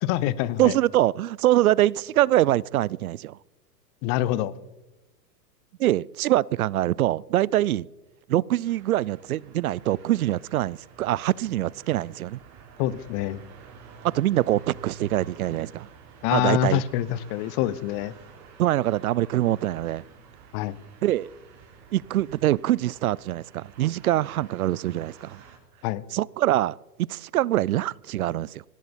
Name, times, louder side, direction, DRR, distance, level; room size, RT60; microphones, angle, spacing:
voice 1, 0.0-0.8 4.0-4.5 12.8-13.4 16.2-18.1 20.5-20.8 25.8-26.0, left 13 dB, 30° left, 0.8 m, -25 dB
voice 2, 0.6-3.4 5.8-7.9 8.3-12.4 14.1-15.9 16.3-16.8 18.6-20.0 21.0-21.3 21.9-25.4 26.1-28.6, right 14 dB, 60° right, 0.5 m, -24 dB
sound 1, 8.6-25.6, right 6 dB, 35° right, 4.5 m, -50 dB
18.0 x 18.0 x 4.3 m
hypercardioid pair, 110°, 50 cm